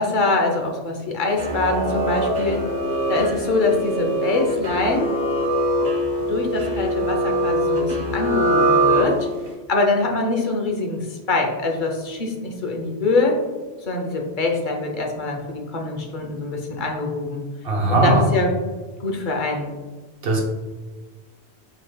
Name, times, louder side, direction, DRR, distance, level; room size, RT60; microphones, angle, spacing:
voice 1, 0.0-2.6 3.1-5.1 6.3-9.3 9.7-13.4 13.8-17.4 17.9-18.5 19.0-19.7, left 3 dB, 50° left, 1 dB, 0.8 m, -24 dB
sound 1, 1.3-9.5, right 1 dB, 45° right, 0.7 m, -22 dB
voice 2, 17.6-18.2 20.2-20.4, right 2 dB, 65° right, -1 dB, 1.1 m, -18 dB
5.0 x 4.0 x 2.2 m, 1.3 s
omnidirectional pair, 1.1 m